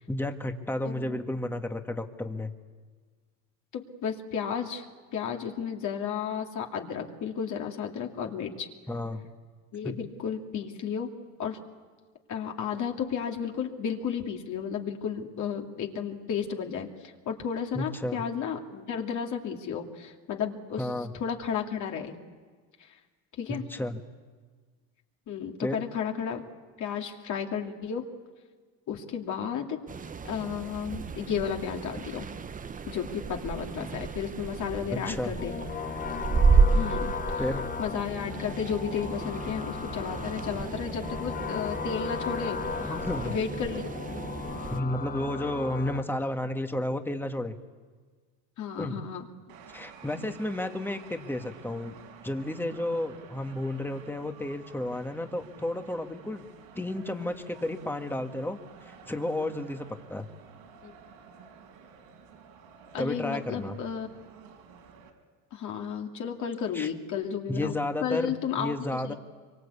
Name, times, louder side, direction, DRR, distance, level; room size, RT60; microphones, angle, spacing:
voice 1, 0.1-2.5 8.9-9.2 9.8-9.9 17.7-18.2 20.8-21.1 23.5-24.0 25.6-25.8 35.0-35.3 37.4-37.6 42.8-43.4 44.7-47.6 48.8-49.0 49.7-52.0 52.2-56.4 56.7-60.3 63.0-63.8 66.7-66.9 67.5-69.1, left 1 dB, 5° left, 6 dB, 1.6 m, -32 dB
voice 2, 0.8-1.2 3.7-4.8 5.1-8.7 9.7-11.1 11.4-11.6 12.3-22.2 22.8-22.9 23.4-23.6 25.3-26.4 26.8-28.1 28.9-29.8 30.2-32.3 32.9-35.5 36.7-37.4 37.8-42.6 43.2-43.9 48.6-49.3 60.8-60.9 62.9-64.1 65.5-69.1, left 7 dB, 50° left, 2 dB, 2.7 m, -33 dB
sound 1, 29.9-44.8, right 4 dB, 20° right, 0.8 m, -31 dB
sound 2, 35.4-46.0, left 6 dB, 25° left, 0.9 m, -36 dB
sound 3, 49.5-65.1, right 6 dB, 85° right, 4.9 m, -51 dB
24.5 x 24.0 x 8.4 m, 1.5 s
cardioid pair, 115°, 37 cm